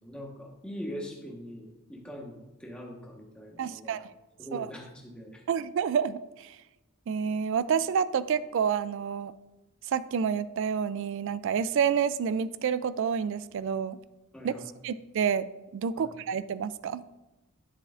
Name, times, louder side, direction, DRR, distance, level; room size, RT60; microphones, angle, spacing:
voice 1, 0.0-4.0 4.4-5.4 14.3-14.7 16.0-16.1, equal, 5° left, -2 dB, 1.3 m, -42 dB
voice 2, 3.6-4.0 4.5-4.7 5.5-6.5 7.1-9.3 9.9-14.0 14.4-14.5 14.8-15.4 15.7-17.1, right 7 dB, 60° right, 15 dB, 0.3 m, -28 dB
10.0 x 7.3 x 2.5 m, 1.0 s
head